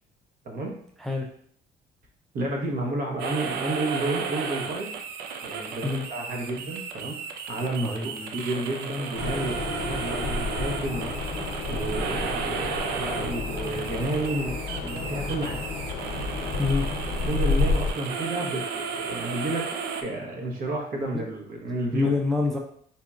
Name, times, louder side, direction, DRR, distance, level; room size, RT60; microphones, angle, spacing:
voice 1, 0.4-0.8 2.3-4.9 5.4-7.2 7.5-11.1 11.7-15.6 17.3-19.7 20.0-22.1, right 2 dB, 60° right, 0 dB, 1.0 m, -31 dB
sound 1, 3.2-20.0, right 5 dB, 75° right, 0.5 m, -34 dB
voice 2, 7.8-8.3 16.6-16.9 21.1-21.2 21.9-22.6, left 3 dB, ahead, 0 dB, 0.4 m, -26 dB
sound 2, 9.1-17.9, left 3 dB, 80° left, 0.7 m, -30 dB
4.1 x 2.7 x 2.4 m, 0.62 s
cardioid pair, 110°, 17 cm